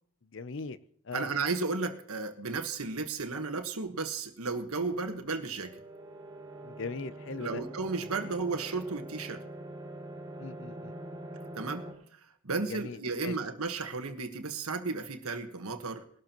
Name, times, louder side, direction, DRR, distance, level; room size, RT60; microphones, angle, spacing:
voice 1, 0.3-0.8 1.1-1.3 6.6-7.6 10.4-10.9 12.7-13.3, left 4 dB, 55° left, 14 dB, 0.6 m, -39 dB
voice 2, 1.1-5.7 7.4-9.4 11.5-11.8 12.1-12.2 12.4-16.0, right 4 dB, 80° right, 5 dB, 1.4 m, -34 dB
sound 1, 5.3-11.9, right 1 dB, 20° right, 2.1 m, -44 dB
20.0 x 12.5 x 3.0 m, 0.64 s
head